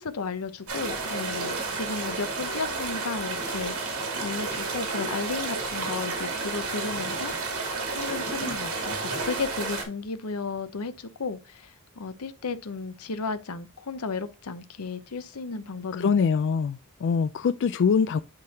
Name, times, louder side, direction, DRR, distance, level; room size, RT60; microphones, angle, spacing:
voice 1, 0.0-7.7 7.9-16.2, left 4 dB, 80° left, 0.8 m, -34 dB
sound 1, 0.7-9.8, right 3 dB, 70° right, 2.7 m, -31 dB
voice 2, 15.9-18.2, left 6 dB, 55° left, 0.3 m, -24 dB
10.5 x 3.8 x 2.8 m
head